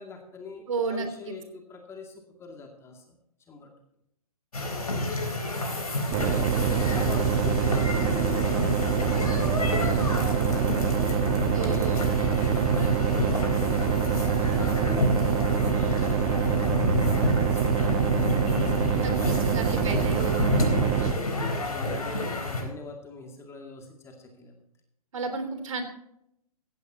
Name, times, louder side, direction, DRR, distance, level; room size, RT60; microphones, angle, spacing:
voice 1, 0.0-3.2 3.5-3.7 6.1-19.7 20.5-24.5, left 3 dB, 15° left, 3 dB, 2.4 m, -43 dB
voice 2, 0.7-1.3 11.5-12.1 19.0-20.6 25.1-25.8, right 4 dB, 60° right, 6 dB, 3.3 m, -32 dB
sound 1, 4.5-22.6, left 1 dB, 70° left, 4.1 m, -30 dB
sound 2, 6.1-21.1, right 7 dB, 30° right, 1.1 m, -25 dB
16.5 x 15.5 x 2.9 m, 0.77 s
figure-of-eight pair, 120°, 19 cm